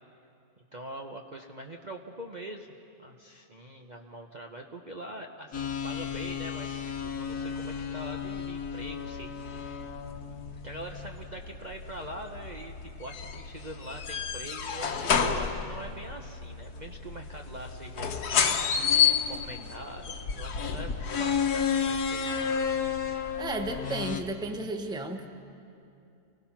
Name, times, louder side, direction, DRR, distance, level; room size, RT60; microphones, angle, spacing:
voice 1, 0.7-2.7 3.0-6.8 7.0-9.9 10.6-18.6 18.8-22.5, right 1 dB, 35° right, 2 dB, 0.9 m, -43 dB
sound 1, 5.5-24.2, left 7 dB, 90° left, 1.6 m, -31 dB
voice 2, 23.4-25.3, right 2 dB, 5° right, 5 dB, 0.9 m, -33 dB
29.5 x 20.5 x 5.9 m, 2.6 s
omnidirectional pair, 1.6 m